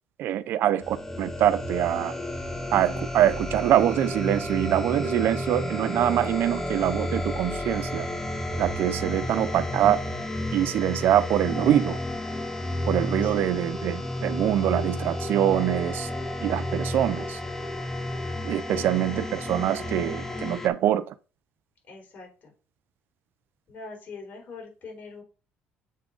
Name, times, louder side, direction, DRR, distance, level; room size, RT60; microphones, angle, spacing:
voice 1, 0.2-2.2 2.7-8.1 8.6-10.0 10.5-12.0 12.9-16.1 16.4-17.4 18.4-21.1, right 11 dB, 70° right, 0.5 m, -24 dB
sound 1, 0.8-20.7, left 1 dB, 10° left, 1.2 m, -31 dB
voice 2, 13.2-13.7 18.6-19.3 21.9-22.5 23.7-25.2, left 4 dB, 55° left, 3.9 m, -43 dB
7.5 x 3.5 x 5.3 m
cardioid pair, 95°, 4 cm